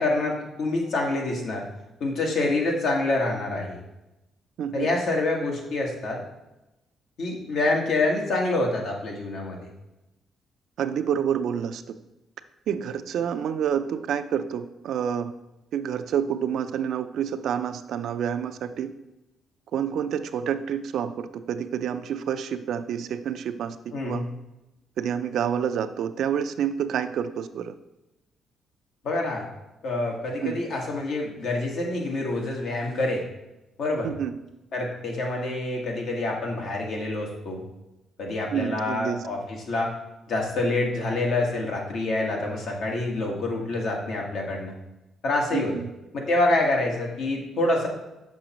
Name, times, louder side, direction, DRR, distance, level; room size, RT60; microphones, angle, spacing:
voice 1, 0.0-1.6 2.0-3.8 4.7-6.2 7.2-9.6 23.9-24.2 29.0-29.5 29.8-33.2 33.8-34.1 34.7-37.6 38.2-39.4 39.7-39.9 40.3-44.7 45.2-45.7 46.1-47.9, left 2 dB, 70° left, 0 dB, 1.4 m, -26 dB
voice 2, 4.6-4.9 10.8-11.8 12.7-15.3 15.7-18.9 19.7-23.8 24.0-24.2 25.0-27.7 30.4-30.6 34.0-34.3 38.5-39.2 45.5-45.9, right 8 dB, 70° right, 10 dB, 0.4 m, -28 dB
6.2 x 6.0 x 2.9 m, 0.96 s
cardioid pair, 90°, 0 cm